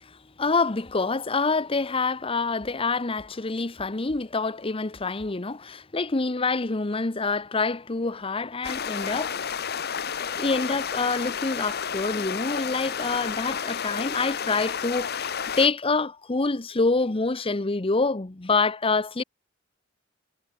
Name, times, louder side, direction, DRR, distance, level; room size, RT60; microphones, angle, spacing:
voice 1, 0.0-9.6 10.2-19.2, left 3 dB, 30° left, 0.9 m, -26 dB
sound 1, 8.6-15.7, left 7 dB, 55° left, 1.2 m, -31 dB
head